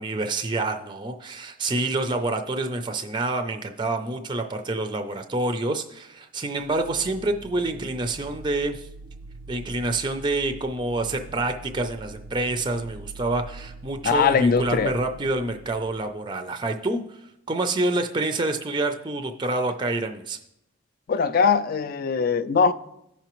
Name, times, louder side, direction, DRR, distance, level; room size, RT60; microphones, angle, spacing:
voice 1, 0.0-8.9 9.5-17.2 17.5-20.4, right 2 dB, 20° right, 0.4 m, -27 dB
sound 1, 6.6-16.2, right 2 dB, 80° right, 0.5 m, -43 dB
voice 2, 14.0-14.9 21.1-22.7, left 5 dB, 45° left, 0.4 m, -21 dB
15.0 x 5.8 x 3.0 m
head